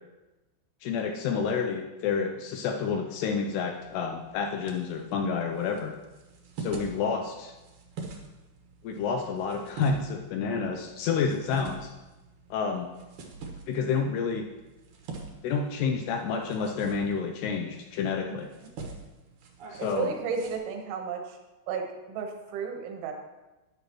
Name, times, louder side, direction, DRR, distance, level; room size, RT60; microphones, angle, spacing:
voice 1, 0.8-5.9 6.6-7.5 8.8-11.9 12.5-12.9 13.7-14.5 15.4-18.5 19.7-20.1, left 5 dB, 85° left, 4 dB, 2.5 m, -29 dB
sound 1, 3.7-20.6, right 4 dB, 65° right, 2.1 m, -45 dB
voice 2, 19.8-21.4 21.7-23.1, right 5 dB, 85° right, 3 dB, 3.7 m, -33 dB
12.5 x 10.5 x 3.0 m, 1.1 s
omnidirectional pair, 5.3 m